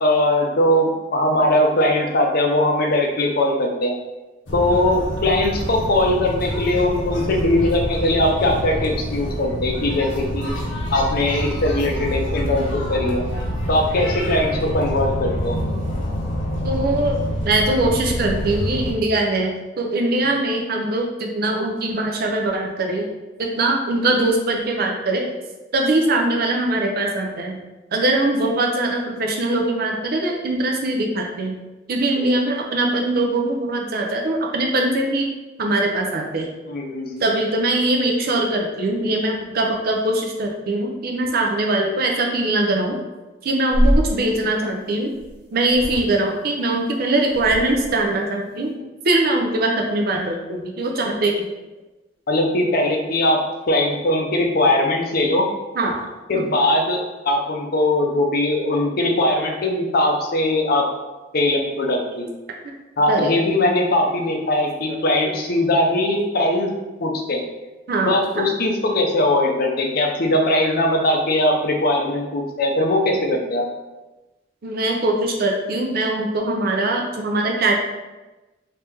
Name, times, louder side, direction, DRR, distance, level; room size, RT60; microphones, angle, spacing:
voice 1, 0.0-3.9 4.5-10.5 10.9-13.2 13.7-15.6 32.2-32.3 36.7-37.2 48.6-48.7 52.3-53.4 53.7-55.5 56.3-60.9 61.3-62.3 63.0-66.7 67.0-67.4 68.1-73.7, left 1 dB, 55° left, 1 dB, 0.6 m, -20 dB
sound 1, 4.5-18.9, equal, 90° left, 0.8 m, -27 dB
voice 2, 16.6-23.1 23.4-25.3 25.7-27.6 27.9-31.6 31.9-35.3 35.6-36.5 37.2-43.0 43.4-45.1 45.5-48.7 49.0-51.5 55.7-56.0 56.3-56.4 63.1-63.3 64.4-64.5 64.9-65.0 65.2-65.3 67.9-68.5 74.6-77.8, right 2 dB, 55° right, 1 dB, 0.6 m, -22 dB
sound 2, 43.7-44.1 45.2-45.3 45.6-46.1 47.3-48.0, equal, 70° right, 1.4 m, -21 dB
3.1 x 2.8 x 3.4 m, 1.1 s
head